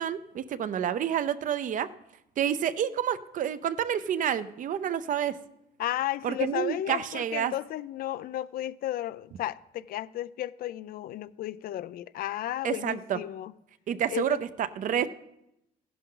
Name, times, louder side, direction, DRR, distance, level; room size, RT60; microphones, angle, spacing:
voice 1, 0.0-1.9 2.4-5.4 6.2-7.5 12.6-13.2 13.9-15.1, right 9 dB, 50° right, 0.6 m, -29 dB
voice 2, 5.8-13.5 14.1-14.4, left 13 dB, 60° left, 0.4 m, -33 dB
15.0 x 11.0 x 3.9 m
cardioid pair, 110°, 17 cm